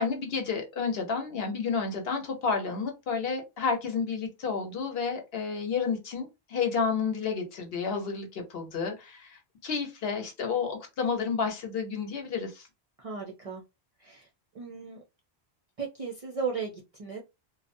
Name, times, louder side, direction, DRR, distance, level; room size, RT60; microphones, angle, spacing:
voice 1, 0.0-12.7, left 5 dB, 65° left, 0.9 m, -31 dB
voice 2, 13.0-13.6 14.0-14.3 14.5-15.0 15.8-17.2, right 5 dB, 50° right, 0.4 m, -36 dB
2.6 x 2.0 x 2.5 m
omnidirectional pair, 1.1 m